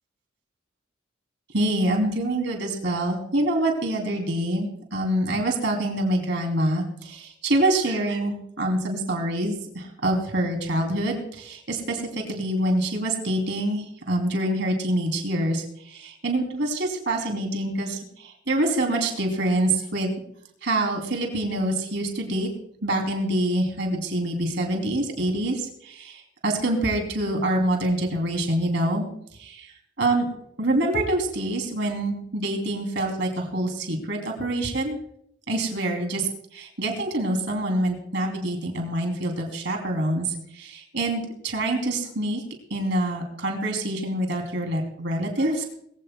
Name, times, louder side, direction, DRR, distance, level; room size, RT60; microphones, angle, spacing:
voice 1, 1.5-20.2 20.6-22.5 22.8-29.1 30.0-30.3 30.6-35.0 35.5-36.2 36.5-42.4 42.7-45.6, right 1 dB, 70° right, 3 dB, 3.2 m, -26 dB
22.0 x 15.5 x 2.3 m, 0.69 s
head